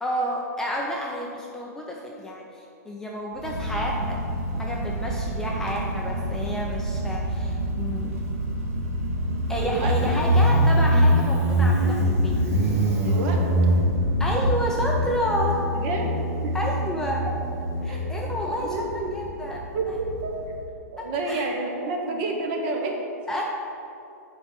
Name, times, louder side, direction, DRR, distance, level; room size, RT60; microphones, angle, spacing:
voice 1, 0.0-4.2 4.6-8.2 9.5-12.7 14.2-15.6 16.0-16.1 16.5-17.3 17.8-19.7 21.0-21.4 23.3-23.4, equal, 5° left, -2 dB, 0.5 m, -30 dB
Motorcycle, 3.4-20.6, equal, 60° right, 1.7 m, -24 dB
voice 2, 9.6-9.9 13.0-13.4 15.7-16.5 17.9-19.1 19.7-20.7 20.9-22.9, right 3 dB, 40° right, 2 dB, 1.2 m, -30 dB
8.1 x 4.7 x 6.8 m, 2.6 s
hypercardioid pair, 155°, 9 cm